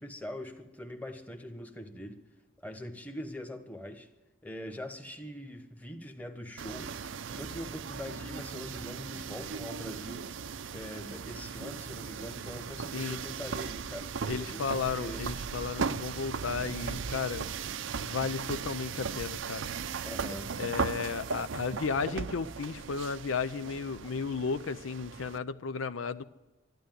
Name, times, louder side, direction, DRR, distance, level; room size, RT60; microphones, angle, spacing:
voice 1, 0.0-2.2 2.6-4.1 4.4-7.0 7.3-10.3 10.7-15.2 20.0-20.5, left 1 dB, 10° left, 6 dB, 1.2 m, -42 dB
sound 1, 6.6-25.4, right 5 dB, 75° right, 0.6 m, -37 dB
voice 2, 14.3-17.5 18.0-19.7 20.3-26.2, left 5 dB, 85° left, 13 dB, 0.6 m, -34 dB
12.5 x 11.5 x 9.3 m, 1.1 s
head